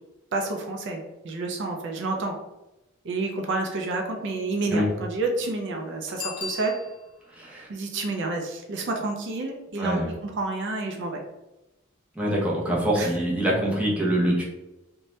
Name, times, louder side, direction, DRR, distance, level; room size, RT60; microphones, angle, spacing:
voice 1, 0.3-2.3 3.0-6.8 7.7-11.2 12.9-13.2, right 3 dB, 60° right, 2 dB, 0.4 m, -29 dB
Bicycle bell, 6.1-7.3 12.8-12.9, left 5 dB, 25° left, 0.3 m, -37 dB
voice 2, 7.4-7.7 9.8-10.0 12.2-14.4, right 1 dB, 5° right, -5 dB, 0.7 m, -24 dB
2.7 x 2.2 x 3.1 m, 0.98 s
head